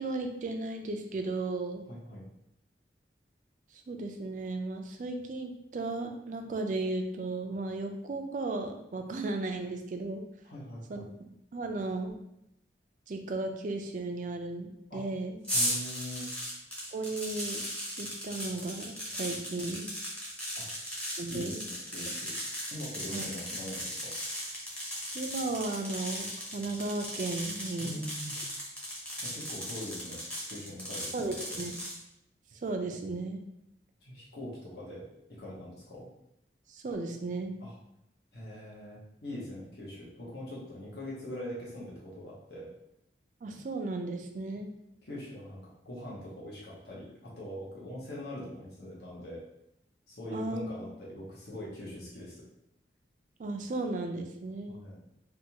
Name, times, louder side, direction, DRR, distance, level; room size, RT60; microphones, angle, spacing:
voice 1, 0.0-1.8 3.7-10.2 10.9-11.0 11.5-12.2 13.1-15.4 16.9-17.7 18.0-19.9 21.2-21.7 23.1-23.2 25.1-28.0 31.1-31.7 32.5-33.4 36.7-37.6 43.4-44.7 50.3-50.7 53.4-54.8, right 2 dB, 45° right, 4 dB, 0.3 m, -35 dB
voice 2, 1.9-2.2 10.4-11.1 14.9-15.0 15.5-16.3 20.6-20.7 21.3-22.3 22.7-24.1 27.8-28.4 29.2-30.2 30.5-31.6 34.0-35.0 35.4-36.1 37.6-37.7 38.3-42.7 45.0-45.6 45.8-49.4 50.1-52.4 54.7-55.0, left 1 dB, 65° left, -6 dB, 0.9 m, -42 dB
sound 1, 15.4-32.0, equal, 5° left, 0.7 m, -37 dB
3.4 x 2.3 x 2.8 m, 0.80 s
head